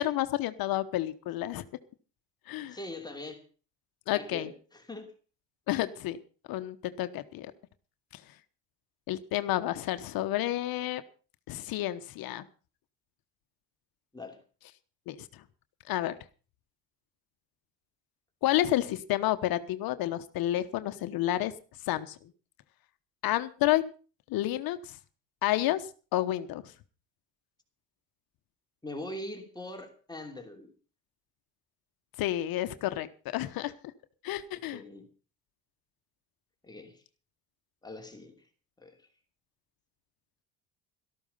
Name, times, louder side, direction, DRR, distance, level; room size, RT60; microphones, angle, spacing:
voice 1, 0.0-1.6 2.5-2.8 4.1-4.5 5.7-6.2 6.5-7.5 8.1-8.2 9.1-11.0 11.5-12.4 15.1-15.2 15.9-16.1 18.4-21.5 21.9-22.2 23.2-23.8 24.3-25.0 25.4-26.6 32.2-33.1 33.3-33.7 34.2-34.8, left 14 dB, 70° left, 1.1 m, -30 dB
voice 2, 2.7-3.4 4.1-5.1 14.1-14.4 28.8-30.7 34.7-35.1 36.6-37.0 37.8-38.3 38.8-39.0, left 1 dB, 10° left, 2.9 m, -42 dB
13.5 x 12.5 x 5.5 m
cardioid pair, 100°, 36 cm